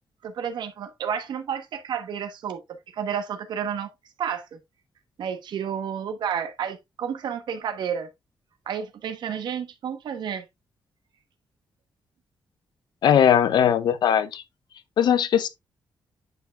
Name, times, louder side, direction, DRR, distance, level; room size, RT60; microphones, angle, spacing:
voice 1, 0.2-2.6 2.9-3.9 4.2-4.6 5.2-8.1 8.7-10.4, right 8 dB, 80° right, 1.1 m, -31 dB
voice 2, 13.0-14.4 15.0-15.5, left 9 dB, 75° left, 0.7 m, -19 dB
9.1 x 5.7 x 2.4 m
wide cardioid pair, 130°, 8 cm